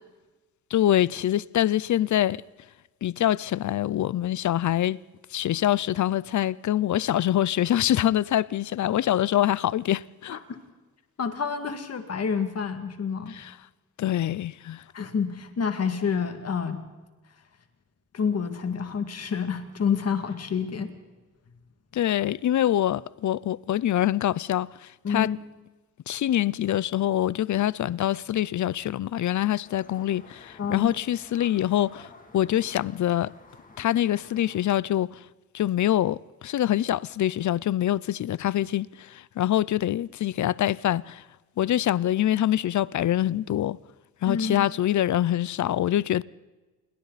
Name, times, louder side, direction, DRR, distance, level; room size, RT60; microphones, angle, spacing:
voice 1, 0.7-2.4 3.0-5.0 5.3-10.4 14.0-14.8 21.9-24.7 25.1-25.3 26.1-33.3 33.8-35.1 35.5-36.2 36.4-41.2 41.6-43.8 44.2-46.2, left 12 dB, 70° left, 0.6 m, -25 dB
voice 2, 11.2-13.3 14.9-16.8 18.1-20.9 25.0-25.4 30.6-30.9 44.3-44.7, left 6 dB, 55° left, 2.3 m, -28 dB
sound 1, 29.6-34.6, left 2 dB, 25° left, 2.7 m, -51 dB
28.0 x 23.0 x 4.1 m
wide cardioid pair, 170°, 30 cm